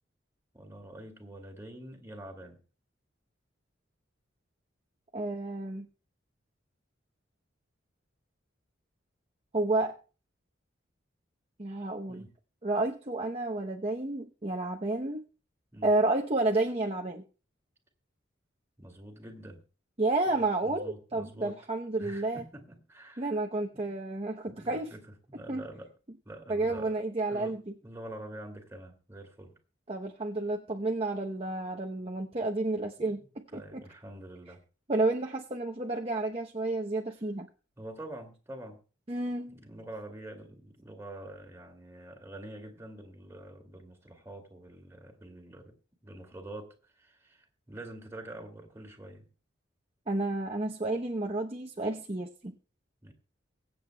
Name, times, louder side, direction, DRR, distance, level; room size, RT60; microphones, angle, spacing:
voice 1, 0.5-2.6 12.1-12.3 15.7-15.9 18.8-19.6 20.6-21.6 22.0-23.4 23.7-23.9 24.5-25.0 25.3-25.9 26.3-27.0 27.3-29.6 33.0-33.2 33.5-34.6 37.8-38.8 39.5-45.7 46.0-49.3 53.0-53.1, right 1 dB, 15° right, 2 dB, 2.4 m, -46 dB
voice 2, 5.1-5.9 9.5-9.9 11.6-12.2 12.6-15.2 15.8-17.2 20.0-22.4 23.2-24.9 25.5-25.6 26.5-27.6 29.9-33.8 34.9-37.5 39.1-39.6 50.1-52.5, right 2 dB, 30° right, 1 dB, 0.9 m, -31 dB
23.5 x 7.9 x 2.3 m, 0.35 s
head